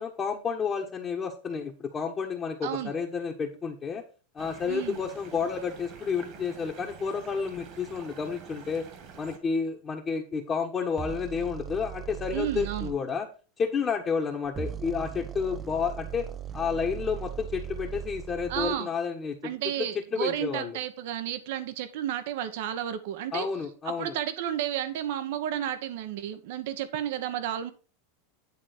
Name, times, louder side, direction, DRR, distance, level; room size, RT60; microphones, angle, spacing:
voice 1, 0.0-4.0 4.3-8.8 9.2-13.3 13.6-16.3 16.5-19.5 19.8-19.9 20.1-20.8 23.3-24.1, left 5 dB, 25° left, 0 dB, 1.2 m, -30 dB
voice 2, 2.6-2.9 4.7-5.0 12.3-12.9 18.5-18.9 19.4-23.5 23.8-27.7, right 11 dB, 70° right, 10 dB, 1.1 m, -32 dB
sound 1, 4.4-9.4, right 6 dB, 50° right, 2.0 m, -47 dB
sound 2, 11.0-13.0 14.4-18.8, right 10 dB, 25° right, 0.4 m, -38 dB
9.8 x 3.6 x 6.6 m, 0.36 s
supercardioid pair, 120°, 0 cm